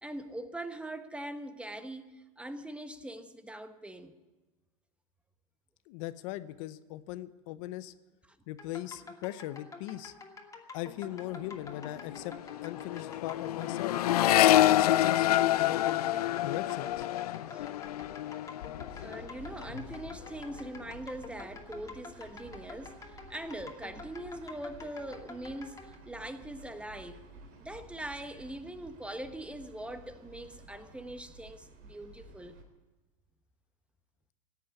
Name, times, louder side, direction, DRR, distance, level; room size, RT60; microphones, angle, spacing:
voice 1, 0.0-4.2 17.5-17.7 18.9-27.2 27.6-32.6, right 1 dB, 5° right, 1.2 m, -42 dB
voice 2, 5.9-7.9 8.5-10.1 10.7-12.3 12.6-14.1 14.8-16.1 16.4-17.1, left 15 dB, 60° left, 0.8 m, -39 dB
sound 1, 8.6-26.0, left 4 dB, 15° left, 2.5 m, -48 dB
Accelerating revving vroom, 11.2-11.5 11.7-19.3 19.6-20.2, left 14 dB, 85° left, 0.4 m, -27 dB
sound 2, 18.9-32.6, right 2 dB, 50° right, 3.7 m, -52 dB
16.5 x 8.5 x 9.6 m
hypercardioid pair, 100°, 19 cm